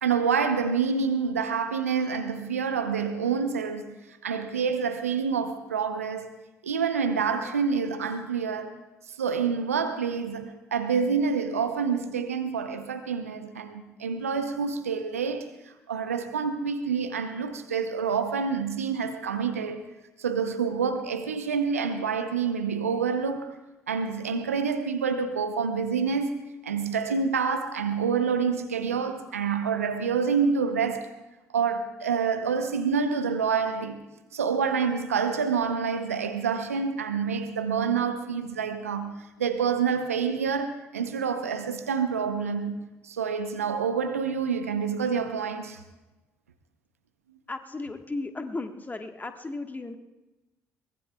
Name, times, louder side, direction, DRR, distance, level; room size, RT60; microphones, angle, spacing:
voice 1, 0.0-6.4 6.6-8.8 9.2-15.5 15.9-19.8 20.2-23.6 23.9-31.1 31.5-34.0 34.3-45.8, right 6 dB, 90° right, 0.7 m, -27 dB
voice 2, 47.5-50.0, left 2 dB, 20° left, 1.4 m, -35 dB
22.5 x 20.0 x 2.3 m
figure-of-eight pair, 45°, 8 cm